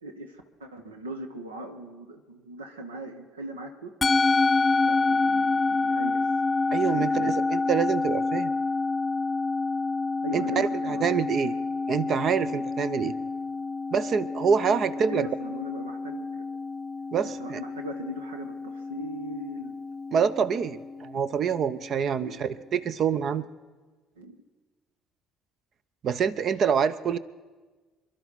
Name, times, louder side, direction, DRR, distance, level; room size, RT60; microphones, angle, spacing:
voice 1, 0.0-3.9 4.8-6.2 6.8-7.4 10.2-11.2 15.1-16.4 17.4-19.8 22.2-22.4 24.2-24.4, right 1 dB, 85° right, 6 dB, 1.1 m, -39 dB
Musical instrument, 4.0-22.5, left 3 dB, 25° left, 0.7 m, -28 dB
voice 2, 6.7-8.5 10.3-11.5 11.9-13.1 13.9-15.3 17.1-17.6 20.1-23.5 26.0-27.2, right 7 dB, 50° right, 16 dB, 0.7 m, -26 dB
27.5 x 11.5 x 4.2 m, 1.3 s
figure-of-eight pair, 55°, 0 cm